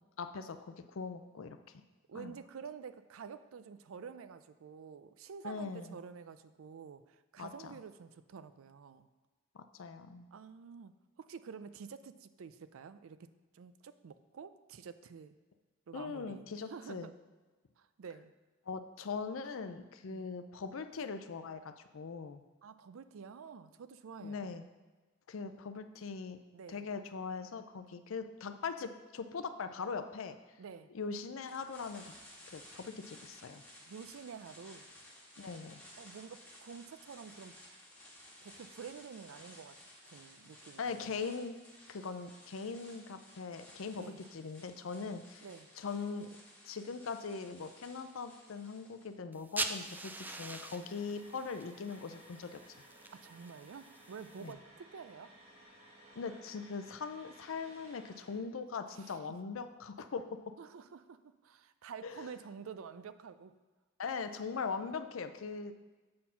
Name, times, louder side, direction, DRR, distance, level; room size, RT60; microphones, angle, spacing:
voice 1, 0.2-1.6 2.1-2.3 5.4-6.0 7.4-7.7 9.5-10.3 15.9-17.1 18.7-22.4 24.2-24.6 25.3-26.4 26.7-30.4 30.9-32.1 32.5-33.6 35.4-35.8 40.8-41.6 41.9-44.0 44.3-45.5 45.8-46.3 46.6-52.6 54.4-54.5 56.2-60.4 62.0-62.3 64.0-65.7, left 5 dB, 75° left, 9 dB, 0.5 m, -41 dB
voice 2, 2.1-9.1 10.3-10.9 11.2-13.3 13.5-15.3 15.9-17.1 17.8-18.3 19.8-20.3 22.6-24.5 26.5-26.8 30.6-30.9 33.9-34.9 36.0-37.6 38.4-39.8 40.1-41.2 44.0-44.2 45.4-45.7 53.1-55.3 58.9-59.4 60.6-63.5, right 6 dB, 90° right, 12 dB, 0.4 m, -49 dB
sound 1, 31.4-49.1, left 1 dB, 5° left, 2.0 m, -57 dB
sound 2, 49.3-54.5, right 2 dB, 10° right, 0.3 m, -43 dB
sound 3, 50.2-58.4, right 1 dB, 30° right, 1.6 m, -58 dB
7.5 x 4.3 x 5.6 m, 1.3 s
head